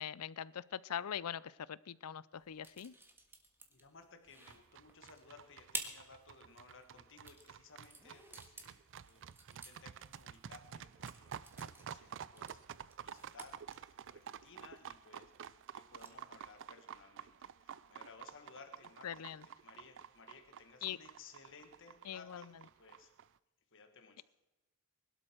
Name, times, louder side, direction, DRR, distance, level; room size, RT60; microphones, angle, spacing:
voice 1, 0.0-2.9 19.0-19.4 20.8-21.0 22.1-22.4, left 9 dB, 85° left, 20 dB, 0.5 m, -42 dB
sound 1, 2.3-16.3, right 2 dB, 10° right, 1.6 m, -52 dB
voice 2, 3.7-12.6 13.0-19.1 19.4-23.1 23.7-24.2, left 4 dB, 60° left, 6 dB, 1.6 m, -59 dB
sound 2, 4.5-23.3, right 8 dB, 60° right, 0.4 m, -51 dB
21.5 x 12.0 x 4.5 m, 1.0 s
head